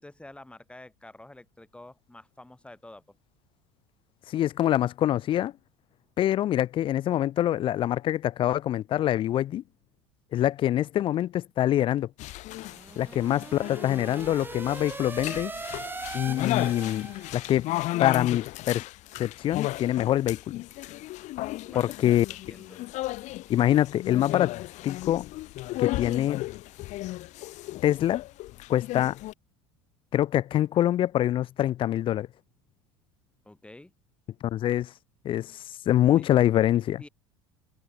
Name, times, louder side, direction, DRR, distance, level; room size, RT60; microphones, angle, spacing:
voice 1, 0.0-3.0 13.1-13.3 21.6-22.8 33.4-33.9 36.2-36.3 37.0-37.1, left 1 dB, 5° left, 4.7 m, -48 dB
voice 2, 4.3-5.5 6.2-9.6 10.3-12.1 13.0-15.5 16.1-17.1 17.3-17.7 18.0-18.8 19.2-20.6 21.8-22.3 23.5-24.5 24.8-25.3 25.8-26.5 27.8-28.2 28.7-29.2 30.1-32.3 34.4-34.9 35.2-37.0, left 12 dB, 35° left, 0.4 m, -25 dB
sound 1, 12.2-29.3, left 17 dB, 50° left, 2.3 m, -34 dB
sound 2, 12.5-17.6, right 3 dB, 15° right, 1.0 m, -40 dB
figure-of-eight pair, 70°, 15 cm